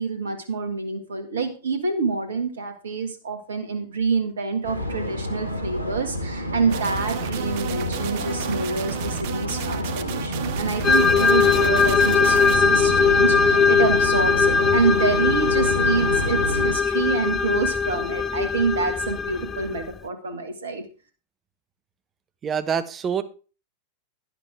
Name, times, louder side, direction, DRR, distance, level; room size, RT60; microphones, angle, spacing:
voice 1, 0.0-20.8, right 4 dB, 65° right, 7 dB, 1.8 m, -27 dB
sound 1, 4.6-16.7, equal, 90° left, 1.6 m, -29 dB
sound 2, 6.7-12.6, right 13 dB, 50° right, 0.8 m, -34 dB
sound 3, 10.8-19.9, left 5 dB, 20° left, 0.6 m, -20 dB
voice 2, 22.4-23.2, right 7 dB, 25° right, 12 dB, 1.1 m, -25 dB
11.5 x 10.5 x 3.4 m, 0.36 s
figure-of-eight pair, 90°, 0 cm